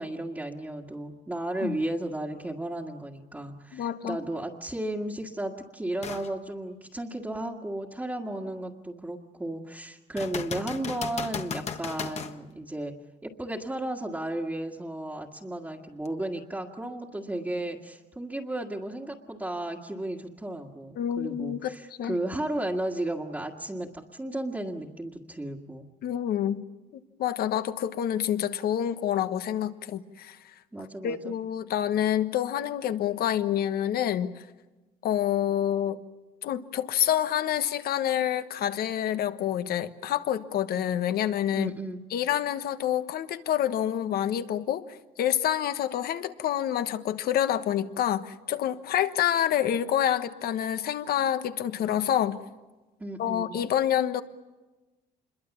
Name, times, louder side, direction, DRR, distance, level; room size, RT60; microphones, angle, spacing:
voice 1, 0.0-25.9 30.7-31.3 41.5-42.0 53.0-53.6, right 1 dB, 10° right, -3 dB, 1.8 m, -34 dB
voice 2, 3.7-4.2 21.0-21.7 22.0-22.2 26.0-26.6 27.2-30.4 31.0-34.4 35.0-36.0 36.4-41.7 42.1-44.8 45.2-52.4 53.2-54.2, left 10 dB, 65° left, 11 dB, 1.3 m, -27 dB
sound 1, 6.0-6.3 6.9-7.0 10.2-12.4 16.0-16.1, left 6 dB, 40° left, 1.4 m, -35 dB
26.5 x 22.0 x 7.3 m, 1.1 s
cardioid pair, 110°, 17 cm